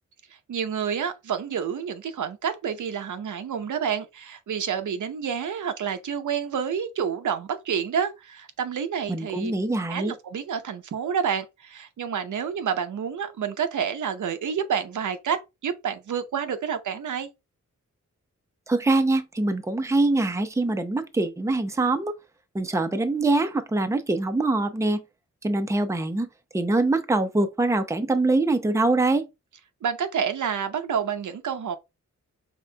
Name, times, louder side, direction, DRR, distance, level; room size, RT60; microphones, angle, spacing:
voice 1, 0.5-9.5 9.9-17.3 29.8-31.8, right 7 dB, 85° right, 0.7 m, -29 dB
voice 2, 9.1-10.1 18.7-22.1 22.5-25.0 25.4-26.3 26.5-29.2, right 2 dB, 10° right, 0.6 m, -24 dB
5.3 x 3.6 x 2.2 m
wide cardioid pair, 120°, 29 cm